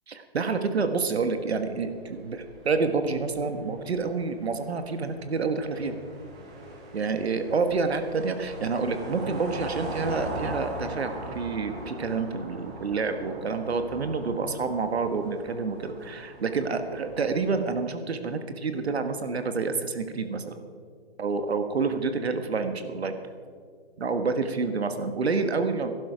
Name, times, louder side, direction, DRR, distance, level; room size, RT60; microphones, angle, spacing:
voice 1, 0.1-6.0 6.9-20.6 21.2-23.1 24.0-25.9, right 4 dB, 80° right, 8 dB, 1.5 m, -28 dB
sound 1, 1.2-17.6, right 1 dB, 5° right, 0.4 m, -40 dB
19.0 x 11.5 x 5.1 m, 2.1 s
hypercardioid pair, 160°, 31 cm